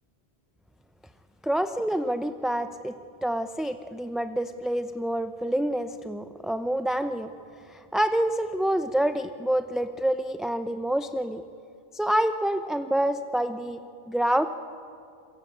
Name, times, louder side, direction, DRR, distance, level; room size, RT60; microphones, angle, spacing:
voice 1, 1.4-3.0 3.2-7.3 7.7-11.4 11.9-13.8 14.1-14.4, right 1 dB, ahead, 8 dB, 0.5 m, -27 dB
27.5 x 23.5 x 8.6 m, 2.5 s
omnidirectional pair, 1.1 m